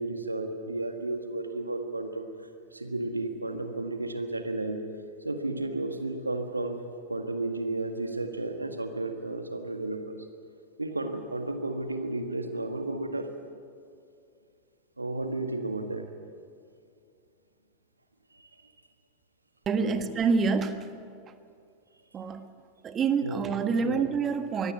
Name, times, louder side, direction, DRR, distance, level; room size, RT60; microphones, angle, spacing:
voice 1, 0.0-2.3 2.7-4.8 5.2-6.8 7.1-10.2 10.8-13.3 15.0-16.1 18.3-18.7 19.8-20.0 23.2-23.4 23.8-24.0, right 2 dB, 80° right, 6 dB, 1.8 m, -33 dB
voice 2, 19.6-20.9 22.1-22.5 22.8-24.7, right 5 dB, 25° right, 9 dB, 1.5 m, -27 dB
24.0 x 16.5 x 8.4 m, 2.4 s
figure-of-eight pair, 90°, 0 cm